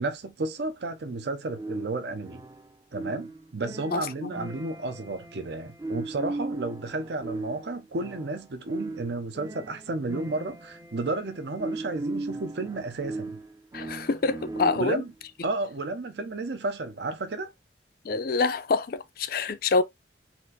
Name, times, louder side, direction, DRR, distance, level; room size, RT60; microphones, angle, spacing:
voice 1, 0.0-2.4 2.9-13.4 14.8-15.1 15.4-17.5, right 2 dB, 65° right, 0.6 m, -32 dB
sound 1, 1.5-15.1, right 2 dB, 20° right, 0.4 m, -38 dB
voice 2, 3.9-4.3 13.7-15.0 18.0-19.8, left 4 dB, 50° left, 0.4 m, -26 dB
4.3 x 2.6 x 3.9 m
head